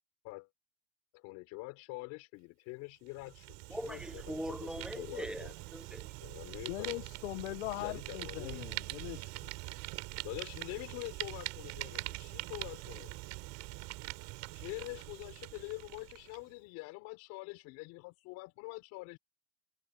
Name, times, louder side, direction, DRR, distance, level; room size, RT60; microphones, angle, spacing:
voice 1, 1.1-5.5 6.2-7.1 7.8-8.7 10.2-13.2 14.5-19.2, left 24 dB, 55° left, 6.9 m, -45 dB
Fire, 3.1-16.4, right 24 dB, 50° right, 7.5 m, -44 dB
voice 2, 3.7-6.1, equal, ahead, 1.1 m, -41 dB
voice 3, 6.7-9.3, left 20 dB, 85° left, 1.5 m, -40 dB
supercardioid pair, 160°, 34 cm